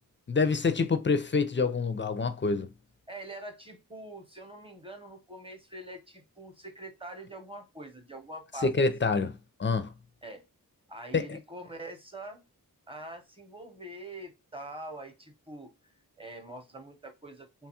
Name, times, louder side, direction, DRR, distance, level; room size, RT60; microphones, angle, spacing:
voice 1, 0.3-2.7 8.6-9.9 11.1-11.4, left 4 dB, 30° left, 0.4 m, -27 dB
voice 2, 3.1-8.7 10.2-10.4 10.9-12.4 12.9-15.7 16.2-17.7, right 1 dB, 15° right, 0.7 m, -44 dB
2.9 x 2.3 x 2.8 m
wide cardioid pair, 50°, 38 cm